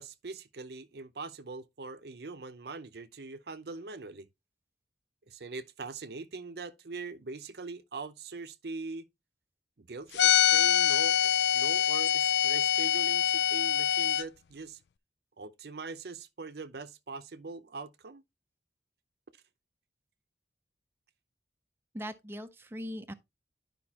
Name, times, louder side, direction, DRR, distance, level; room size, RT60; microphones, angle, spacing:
voice 1, 0.0-4.3 5.3-9.1 9.8-14.8 15.4-18.2, right 3 dB, 65° right, 0.6 m, -42 dB
sound 1, 10.2-14.2, left 10 dB, 75° left, 0.4 m, -25 dB
voice 2, 21.9-23.1, equal, 15° right, 0.5 m, -40 dB
11.0 x 5.2 x 2.9 m
head